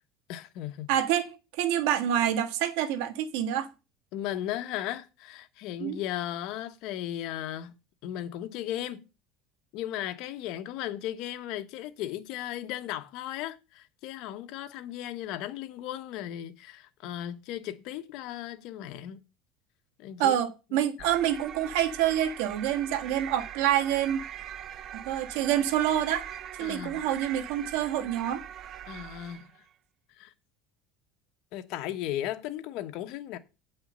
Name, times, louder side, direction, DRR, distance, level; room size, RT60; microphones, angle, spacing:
voice 1, 0.3-0.9 4.1-7.7 8.0-9.1 9.7-19.2 20.0-20.3 20.7-21.1 26.6-27.1 28.9-29.5 30.1-30.3 31.5-33.4, left 12 dB, 60° left, 1.2 m, -36 dB
voice 2, 0.9-3.7 5.8-6.0 20.2-24.2 24.9-26.3 26.6-28.4, right 11 dB, 80° right, 1.5 m, -27 dB
sound 1, 21.0-29.6, right 10 dB, 40° right, 0.7 m, -42 dB
9.0 x 5.7 x 6.7 m
cardioid pair, 150°, 0 cm